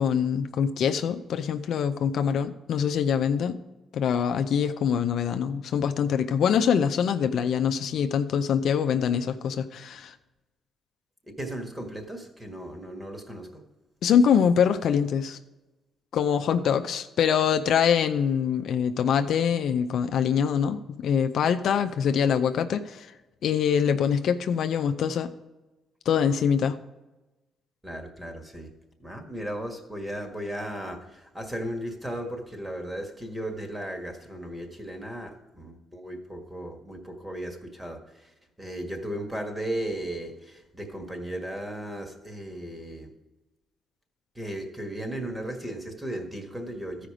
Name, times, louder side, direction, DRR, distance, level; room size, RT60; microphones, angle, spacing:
voice 1, 0.0-3.6 3.9-10.1 14.0-15.4 16.1-23.1 23.4-25.3 26.1-26.8, left 7 dB, 70° left, 8 dB, 0.5 m, -24 dB
voice 2, 11.3-13.6 27.8-28.7 29.0-43.1 44.3-47.1, right 1 dB, 10° right, 3 dB, 1.7 m, -36 dB
13.5 x 5.0 x 5.0 m, 1.1 s
cardioid pair, 90°, 0 cm